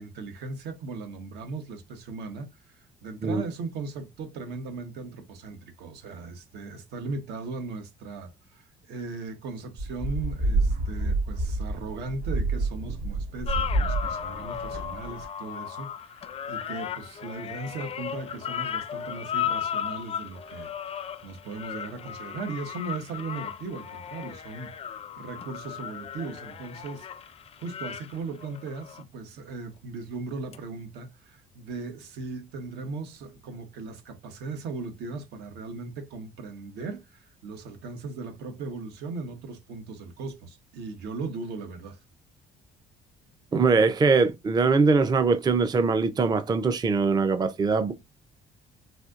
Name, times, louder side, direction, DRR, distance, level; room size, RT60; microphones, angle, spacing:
voice 1, 0.0-2.5 3.0-27.1 27.6-42.0, right 3 dB, 80° right, 1.1 m, -38 dB
sound 1, 9.8-15.3, right 2 dB, 50° right, 2.0 m, -28 dB
sound 2, 13.5-29.0 30.5-30.6, left 9 dB, 35° left, 0.4 m, -35 dB
voice 2, 43.5-47.9, right 4 dB, 25° right, 0.5 m, -22 dB
4.2 x 2.7 x 2.4 m
cardioid pair, 110°, 17 cm